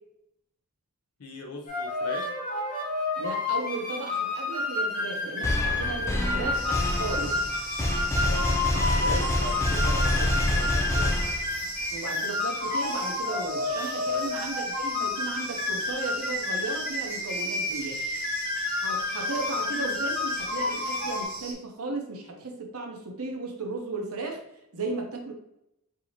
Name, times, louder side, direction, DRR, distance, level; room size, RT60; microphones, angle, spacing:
voice 1, 1.2-2.3 8.2-8.6 8.9-11.2 14.1-14.3, left 2 dB, 90° left, 1 dB, 0.8 m, -38 dB
sound 1, 1.7-21.3, left 3 dB, 35° left, 1.0 m, -30 dB
voice 2, 3.2-7.4 8.7-8.8 9.1-9.3 11.9-18.0 18.8-24.4 24.7-25.3, right 3 dB, 70° right, 2 dB, 0.8 m, -35 dB
sound 2, 5.4-11.8, left 1 dB, 10° left, 0.4 m, -27 dB
sound 3, 6.5-21.5, right 2 dB, 40° right, 1.0 m, -40 dB
4.8 x 2.8 x 2.9 m, 0.83 s
head